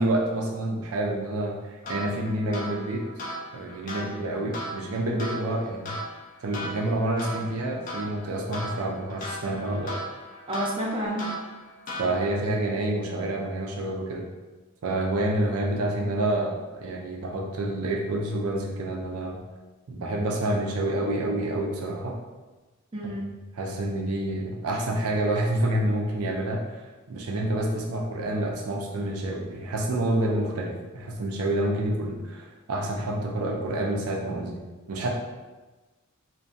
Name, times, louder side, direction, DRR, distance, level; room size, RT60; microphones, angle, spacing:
voice 1, 0.0-3.0 3.5-6.0 6.4-10.0 12.0-14.3 14.8-19.4 19.9-22.2 23.5-26.8 27.1-34.6 34.9-35.1, right 1 dB, 90° right, 1 dB, 0.5 m, -28 dB
sound 1, 1.8-12.5, equal, 40° left, 0.4 m, -38 dB
voice 2, 10.5-11.3 22.9-23.3, right 1 dB, 25° right, -5 dB, 0.5 m, -30 dB
2.6 x 2.2 x 2.4 m, 1.2 s
head